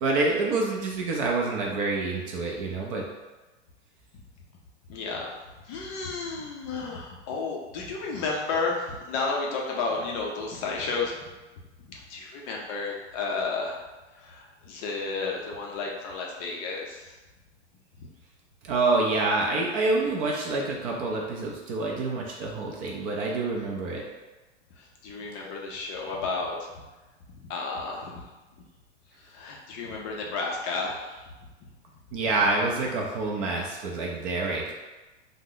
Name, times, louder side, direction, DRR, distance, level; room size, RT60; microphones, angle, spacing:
voice 1, 0.0-3.1 18.6-24.0 32.1-34.7, right 3 dB, 30° right, -1 dB, 0.4 m, -27 dB
voice 2, 4.9-5.3 5.7-11.2 11.9-13.8 14.1-17.1 18.0-18.1 24.8-26.7 27.3-28.2 29.2-31.2, left 4 dB, 30° left, -2 dB, 0.4 m, -32 dB
2.7 x 2.0 x 3.7 m, 1.2 s
hypercardioid pair, 130°, 35 cm